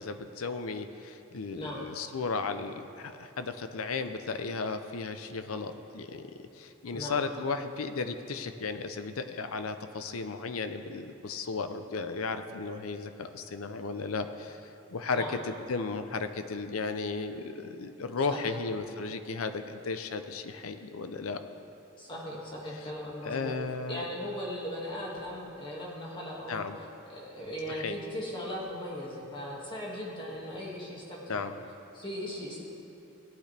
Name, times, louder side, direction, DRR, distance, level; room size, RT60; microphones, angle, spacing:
voice 1, 0.0-21.4 23.2-24.1 26.5-26.8 27.7-27.9 31.3-31.5, left 4 dB, 90° left, 9 dB, 0.6 m, -35 dB
voice 2, 1.5-1.9 6.9-7.2 15.1-15.4 18.2-18.6 22.0-23.5 23.9-26.7 27.1-31.4 31.9-32.6, equal, 25° left, -4 dB, 2.0 m, -38 dB
17.5 x 9.0 x 3.4 m, 2.8 s
head